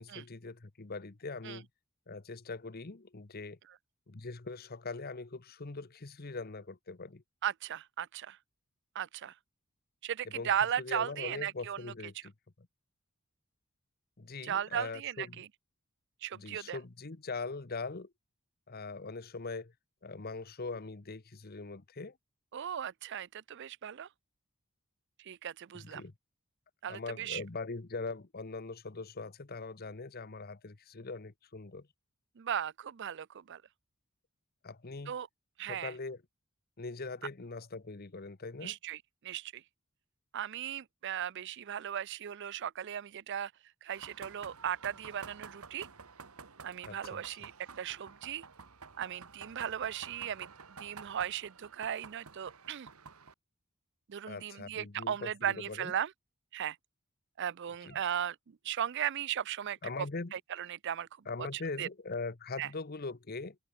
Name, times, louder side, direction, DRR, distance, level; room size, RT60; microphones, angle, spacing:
voice 1, 0.0-1.7 2.1-3.6 4.1-7.2 10.3-10.5 10.8-12.3 12.6-12.7 14.2-15.4 16.3-18.1 18.7-19.7 20.0-22.1 25.9-26.1 26.9-31.9 34.6-35.1 35.7-36.2 36.8-38.7 46.8-47.2 54.3-55.9 57.8-58.0 59.8-60.3 61.3-63.6, left 3 dB, 45° left, 1.0 m, -41 dB
voice 2, 7.4-8.4 8.9-9.3 10.0-11.8 12.1-12.2 14.4-15.5 16.2-16.8 22.5-24.1 25.2-26.0 26.8-27.4 32.4-33.6 35.1-35.3 35.6-35.9 38.6-39.6 40.3-43.5 43.8-45.9 46.6-47.5 47.8-48.4 49.0-50.5 50.8-52.9 54.1-56.1 56.5-56.8 57.4-60.1 60.3-61.1 61.4-61.9 62.6-62.7, right 9 dB, 55° right, 0.4 m, -37 dB
sound 1, 43.9-53.3, right 5 dB, 85° right, 1.7 m, -51 dB
head